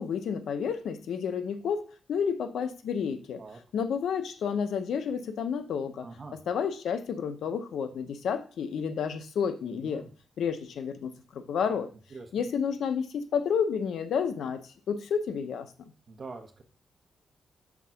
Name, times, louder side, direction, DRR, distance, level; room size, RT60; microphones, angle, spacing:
voice 1, 0.0-3.4 3.7-6.1 6.5-10.0 10.4-11.9 12.3-14.6 14.9-15.7, left 7 dB, 85° left, 0.7 m, -30 dB
voice 2, 6.0-6.4 9.6-10.1 12.1-12.5 16.1-16.6, right 3 dB, 40° right, 1.1 m, -44 dB
6.1 x 3.7 x 5.8 m
cardioid pair, 110°, 0 cm